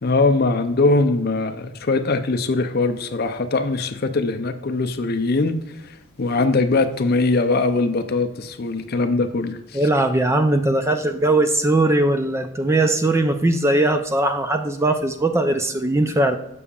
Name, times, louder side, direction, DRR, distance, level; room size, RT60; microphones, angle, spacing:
voice 1, 0.0-5.6 5.8-5.9 6.2-9.8, left 3 dB, 45° left, 8 dB, 0.5 m, -21 dB
voice 2, 9.7-16.4, right 2 dB, 15° right, 7 dB, 0.4 m, -19 dB
7.0 x 6.9 x 2.4 m, 0.85 s
head